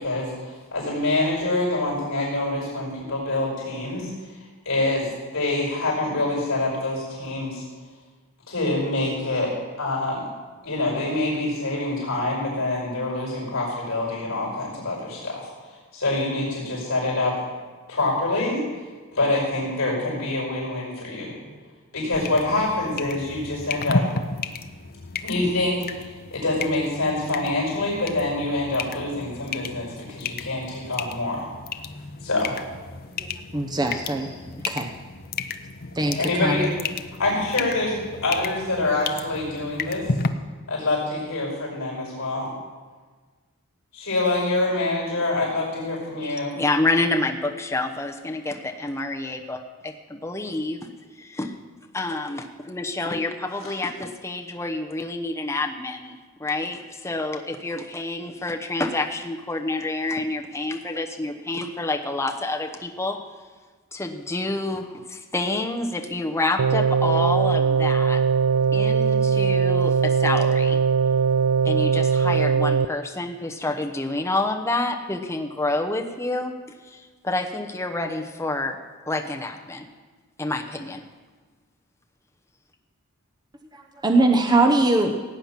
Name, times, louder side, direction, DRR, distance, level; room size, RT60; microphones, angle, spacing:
voice 1, 0.0-4.1 4.7-7.6 8.5-10.2 10.6-17.4 17.9-18.6 19.1-21.4 21.9-24.0 25.2-31.5 32.2-32.6 33.9-34.0 36.2-36.7 37.2-40.1 40.7-42.5 44.0-46.5 54.0-54.1, left 2 dB, 65° left, -2 dB, 5.2 m, -26 dB
sound 1, 22.1-40.3, left 4 dB, 45° left, 0.6 m, -33 dB
voice 2, 33.5-34.3 34.7-34.9 36.0-36.7 84.0-85.1, right 2 dB, 20° right, 3 dB, 0.8 m, -21 dB
voice 3, 46.2-50.8 51.2-51.5 51.9-63.2 63.9-68.2 68.7-70.8 71.6-76.5 76.9-78.8 79.1-79.9 80.4-81.0, left 2 dB, 15° left, 3 dB, 0.9 m, -28 dB
sound 2, 66.6-72.9, right 6 dB, 75° right, 0.4 m, -20 dB
17.0 x 9.0 x 5.9 m, 1.4 s
head